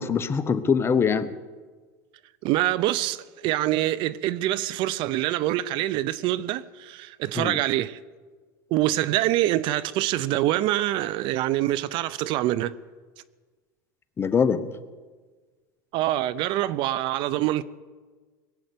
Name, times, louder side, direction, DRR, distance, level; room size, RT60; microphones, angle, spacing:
voice 1, 0.0-1.3 7.3-7.6 14.2-14.7, left 6 dB, 25° left, 0.9 m, -23 dB
voice 2, 2.4-8.0 8.7-12.7 15.9-17.6, right 15 dB, 50° right, 0.6 m, -25 dB
20.5 x 7.8 x 8.6 m
supercardioid pair, 115°, 10 cm